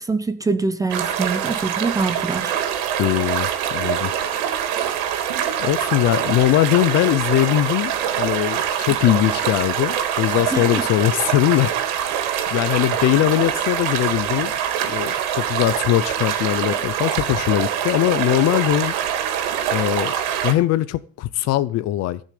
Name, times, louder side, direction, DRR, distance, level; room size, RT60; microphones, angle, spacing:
voice 1, 0.0-2.5 10.5-10.8, right 3 dB, 10° right, 0.6 m, -24 dB
sound 1, 0.9-20.5, right 9 dB, 80° right, 3.1 m, -24 dB
voice 2, 3.0-4.1 5.6-12.2 12.5-14.5 14.9-18.9 19.7-20.1 20.4-22.2, left 14 dB, 40° left, 0.6 m, -21 dB
15.0 x 6.3 x 8.5 m
cardioid pair, 175°, 41 cm